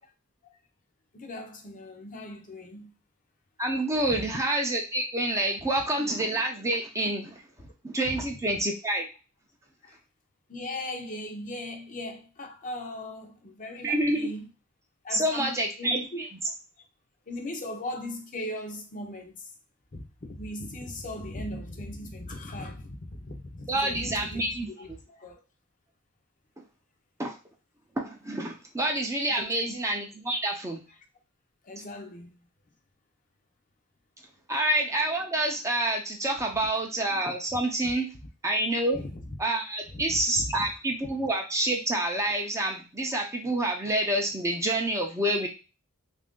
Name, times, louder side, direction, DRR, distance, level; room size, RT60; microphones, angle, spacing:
voice 1, 1.1-2.9 4.1-4.3 8.1-8.2 9.8-10.0 10.5-14.5 15.0-16.2 17.3-19.5 19.9-25.4 29.4-29.7 31.6-32.3 38.9-39.3 39.9-40.6, left 1 dB, 35° left, 0.6 m, -38 dB
voice 2, 3.6-7.4 7.8-9.1 13.8-14.3 15.1-16.3 23.7-25.0 27.2-27.3 28.0-30.8 34.5-38.1 38.4-39.0 39.4-45.5, right 1 dB, 15° right, 0.5 m, -28 dB
3.2 x 2.5 x 3.6 m
head